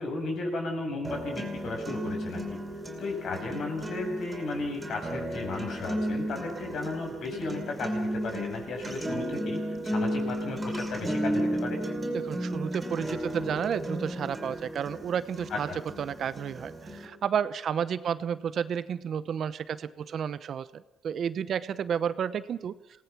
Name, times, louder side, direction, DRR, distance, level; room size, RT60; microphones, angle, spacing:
voice 1, 0.0-2.6 3.0-11.8 15.5-15.8, left 2 dB, 65° left, 2 dB, 7.3 m, -34 dB
sound 1, 1.0-17.0, equal, 20° right, 4.6 m, -34 dB
voice 2, 12.1-15.7 16.0-22.7, right 8 dB, 60° right, 15 dB, 0.9 m, -31 dB
27.5 x 18.0 x 6.0 m, 0.89 s
cardioid pair, 110°, 0 cm